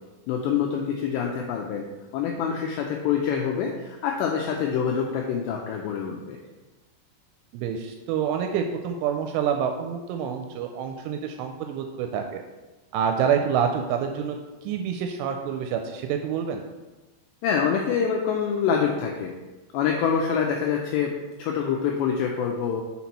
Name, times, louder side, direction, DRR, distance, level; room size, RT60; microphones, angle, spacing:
voice 1, 0.3-1.9 2.1-6.4 17.4-19.3 19.7-21.1 21.4-22.8, left 7 dB, 90° left, 1 dB, 2.5 m, -26 dB
voice 2, 7.5-12.4 12.9-14.4 14.6-16.6, right 7 dB, 85° right, 4 dB, 2.9 m, -27 dB
6.0 x 5.9 x 4.1 m, 1.1 s
omnidirectional pair, 5.7 m